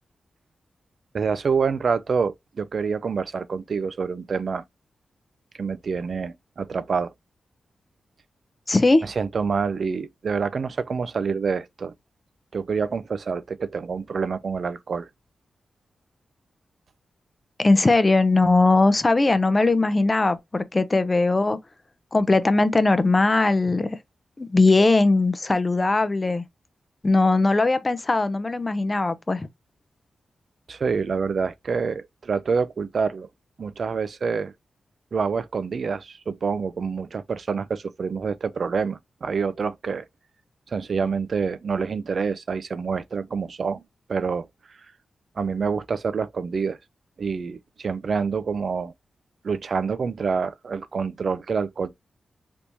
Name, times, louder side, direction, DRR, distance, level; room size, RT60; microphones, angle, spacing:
voice 1, 1.1-4.6 5.6-7.1 9.0-11.9 12.5-15.1 30.7-33.3 33.6-34.5 35.1-40.1 40.7-43.8 44.1-44.5 45.4-46.8 47.2-48.9 49.4-51.9, right 5 dB, 55° right, 0.3 m, -27 dB
voice 2, 8.7-9.1 17.6-21.6 22.1-24.0 24.4-26.4 27.0-29.5, left 3 dB, 25° left, 0.4 m, -20 dB
3.4 x 3.0 x 2.6 m
wide cardioid pair, 110°, 0 cm